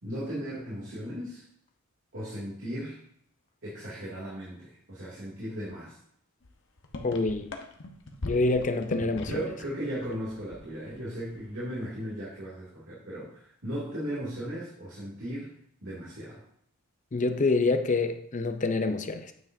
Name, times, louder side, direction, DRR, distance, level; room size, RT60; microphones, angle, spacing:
voice 1, 0.0-1.4 2.1-3.0 3.6-6.0 9.3-13.3 13.6-15.5 15.8-16.4, equal, 55° right, 2.5 m, -36 dB
sound 1, 6.4-6.5 6.8-9.7 9.9-11.0 11.3-11.6, left 2 dB, 60° left, 1.0 m, -39 dB
voice 2, 7.0-7.5 8.2-9.3 17.1-19.3, left 3 dB, 35° left, 0.6 m, -26 dB
9.3 x 7.1 x 2.7 m
head